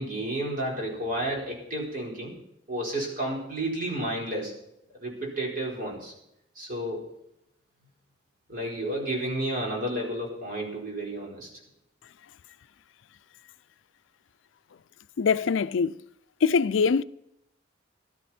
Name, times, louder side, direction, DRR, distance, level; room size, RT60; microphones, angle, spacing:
voice 1, 0.0-2.3 2.7-4.5 5.0-6.1 6.5-7.1 8.5-11.5, right 1 dB, 50° right, 4.6 m, -31 dB
voice 2, 15.2-16.0 16.4-17.0, left 5 dB, 85° left, 0.4 m, -23 dB
16.5 x 12.5 x 4.4 m
head